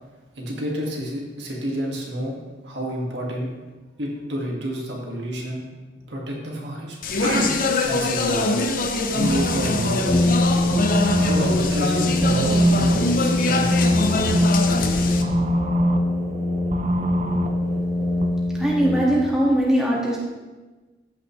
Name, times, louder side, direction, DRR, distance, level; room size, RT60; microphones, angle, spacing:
voice 1, 0.4-2.4 2.6-3.5 4.0-5.7 6.1-7.6 7.8-8.6 9.1-10.7 11.2-13.7 13.9-14.1, equal, 70° right, -2 dB, 2.0 m, -29 dB
Speech, 7.0-15.2, left 3 dB, 50° left, 0.7 m, -24 dB
sound 1, 8.6-18.3, right 1 dB, 40° right, 0.6 m, -26 dB
Brass instrument, 10.1-19.5, left 2 dB, 15° left, 0.5 m, -24 dB
voice 2, 18.6-20.2, right 1 dB, 5° right, -5 dB, 1.8 m, -20 dB
15.0 x 5.8 x 3.2 m, 1.2 s
head